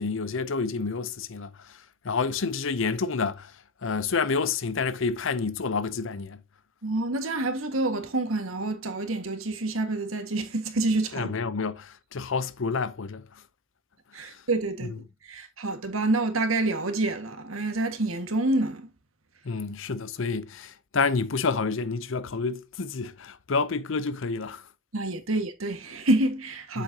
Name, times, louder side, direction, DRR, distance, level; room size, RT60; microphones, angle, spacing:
voice 1, 0.0-1.5 2.0-3.5 3.8-6.4 11.1-13.2 14.2-14.4 19.4-24.6 26.7-26.8, left 4 dB, 65° left, 0.7 m, -29 dB
voice 2, 6.8-11.3 14.1-15.0 15.2-18.9 24.9-26.8, right 2 dB, 85° right, 1.8 m, -27 dB
7.7 x 7.6 x 2.8 m
head